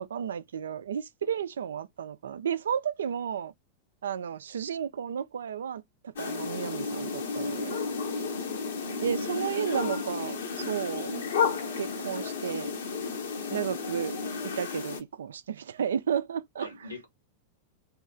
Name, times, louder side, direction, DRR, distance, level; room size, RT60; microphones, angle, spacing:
voice 1, 0.0-3.5 4.0-7.8 8.1-8.3 9.0-11.1 11.8-12.7 13.5-16.7, right 8 dB, 65° right, 0.3 m, -33 dB
sound 1, 6.2-15.0, left 5 dB, 65° left, 0.9 m, -32 dB
voice 2, 9.0-9.8 16.6-17.1, left 3 dB, 80° left, 1.3 m, -44 dB
3.0 x 2.8 x 3.5 m
figure-of-eight pair, 90°, 0 cm